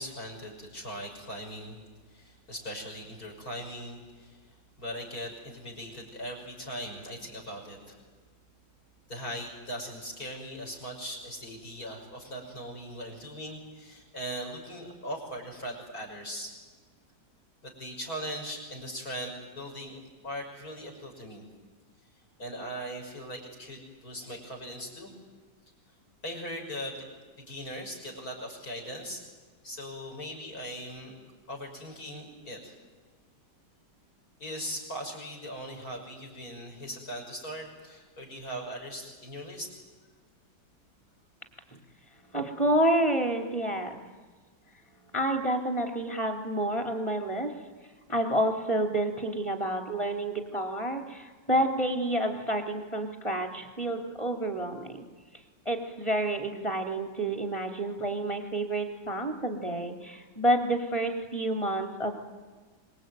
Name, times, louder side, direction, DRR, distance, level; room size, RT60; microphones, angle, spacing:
voice 1, 0.0-1.8 2.1-4.4 4.8-8.0 9.1-16.5 17.6-20.0 20.2-21.4 22.4-25.1 26.2-27.1 27.4-29.2 29.6-31.1 31.5-32.8 34.4-39.7, equal, 55° left, 1 dB, 6.3 m, -39 dB
voice 2, 42.3-43.9 45.0-47.5 48.1-55.0 55.6-62.1, right 1 dB, 15° left, 4 dB, 3.4 m, -29 dB
25.5 x 23.0 x 9.3 m, 1.4 s
omnidirectional pair, 1.9 m